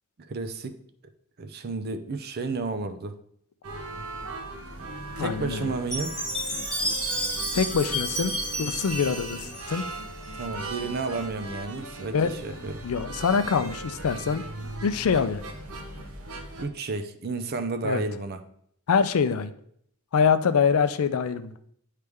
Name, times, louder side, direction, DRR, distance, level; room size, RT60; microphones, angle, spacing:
voice 1, 0.2-0.7 1.4-3.2 5.2-6.2 10.3-12.8 16.6-18.4, right 3 dB, 45° right, 8 dB, 0.5 m, -32 dB
sound 1, 3.6-16.6, right 2 dB, 65° right, 0.8 m, -38 dB
voice 2, 5.2-5.7 7.5-8.3 8.6-9.8 12.1-12.3 12.8-14.4 14.8-15.4 17.8-18.0 18.9-19.5 20.1-21.5, left 6 dB, 70° left, 11 dB, 0.4 m, -24 dB
Chime, 5.9-10.2, equal, 5° left, 2.1 m, -31 dB
9.2 x 3.3 x 3.5 m, 0.67 s
head